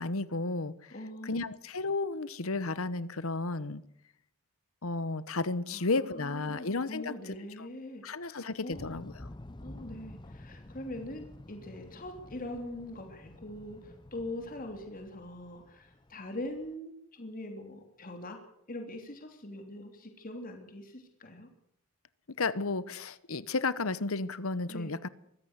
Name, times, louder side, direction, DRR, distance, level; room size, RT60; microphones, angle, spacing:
voice 1, 0.0-0.9 1.2-3.8 4.8-7.1 7.6-7.7 8.0-9.3 22.4-25.1, left 3 dB, 75° left, 17 dB, 1.1 m, -33 dB
voice 2, 0.9-1.4 5.7-9.0 9.6-18.4 18.7-21.5 24.7-24.9, left 1 dB, 40° left, 4 dB, 3.2 m, -43 dB
sound 1, 8.7-16.7, left 1 dB, 20° left, 0.8 m, -50 dB
23.0 x 15.5 x 8.1 m, 0.72 s
head